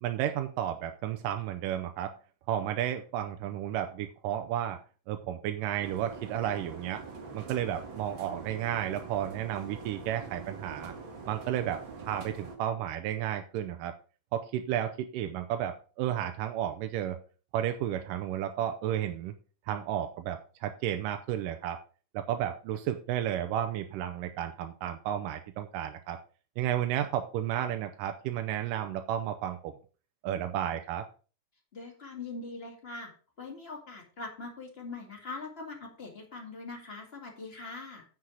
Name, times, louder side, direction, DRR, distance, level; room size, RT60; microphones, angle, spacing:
voice 1, 0.0-2.1 2.5-4.8 5.1-7.0 7.3-10.9 11.3-13.9 14.3-17.2 17.5-19.3 19.7-21.8 22.1-26.2 26.6-29.7 30.2-31.1, right 11 dB, 85° right, 7 dB, 2.4 m, -32 dB
sound 1, 5.8-12.6, right 4 dB, 45° right, 1.9 m, -44 dB
voice 2, 31.7-33.1 33.4-38.0, left 3 dB, 20° left, 1 dB, 1.8 m, -42 dB
9.7 x 6.4 x 4.9 m, 0.37 s
omnidirectional pair, 3.8 m